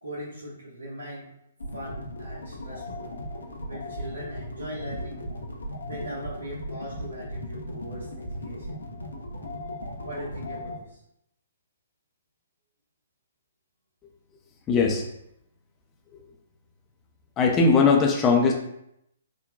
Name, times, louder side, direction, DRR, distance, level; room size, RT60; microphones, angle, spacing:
voice 1, 0.0-1.3 1.7-3.1 3.7-5.3 5.8-8.8 10.0-11.0, equal, 80° right, -7 dB, 1.0 m, -39 dB
sound 1, 1.6-10.8, left 1 dB, 75° left, 0.6 m, -37 dB
voice 2, 14.7-15.0 17.4-18.5, left 4 dB, 20° left, 0 dB, 0.4 m, -19 dB
3.7 x 2.1 x 2.2 m, 0.79 s
figure-of-eight pair, 125°, 0 cm